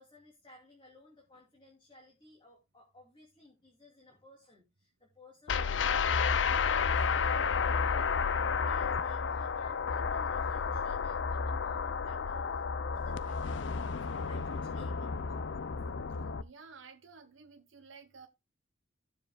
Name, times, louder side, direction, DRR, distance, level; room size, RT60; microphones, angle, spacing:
voice 1, 0.0-13.6 14.0-15.5, left 2 dB, 25° left, 2.5 m, -57 dB
sound 1, 5.5-16.4, left 5 dB, 65° left, 0.5 m, -31 dB
voice 2, 16.4-18.3, right 5 dB, 75° right, 1.0 m, -53 dB
16.5 x 7.2 x 2.2 m
head